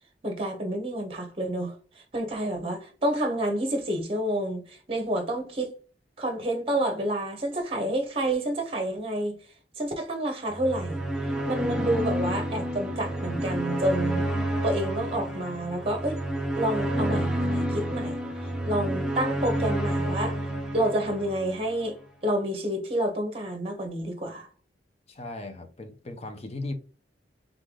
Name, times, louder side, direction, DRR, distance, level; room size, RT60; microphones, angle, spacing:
voice 1, 0.2-1.7 2.1-5.7 6.2-9.4 9.8-11.0 11.5-14.3 14.6-16.2 16.5-18.2 18.6-20.4 20.7-22.0 22.2-24.5, right 1 dB, 30° right, 0.9 m, -29 dB
sound 1, 10.5-21.9, right 1 dB, 5° right, 0.7 m, -29 dB
voice 2, 25.1-26.7, left 2 dB, 35° left, 0.6 m, -37 dB
3.6 x 3.3 x 3.7 m
head